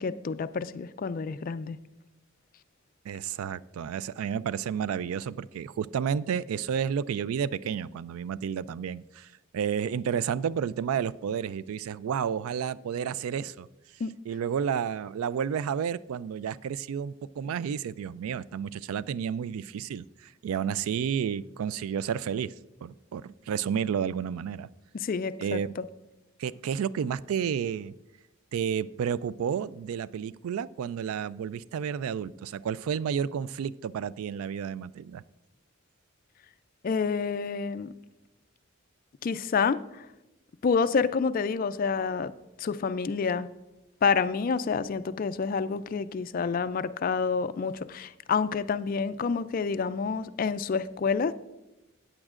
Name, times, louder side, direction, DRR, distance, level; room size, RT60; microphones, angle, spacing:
voice 1, 0.0-1.8 14.0-14.2 24.9-25.8 36.8-37.9 39.2-40.0 40.6-42.3 42.6-43.5 44.0-51.3, left 5 dB, 40° left, 14 dB, 0.3 m, -28 dB
voice 2, 3.1-9.3 9.5-13.7 14.3-22.5 22.8-24.7 25.4-25.7 26.4-27.9 28.5-35.2, right 7 dB, 85° right, 18 dB, 0.3 m, -31 dB
15.0 x 8.9 x 2.5 m, 0.99 s
head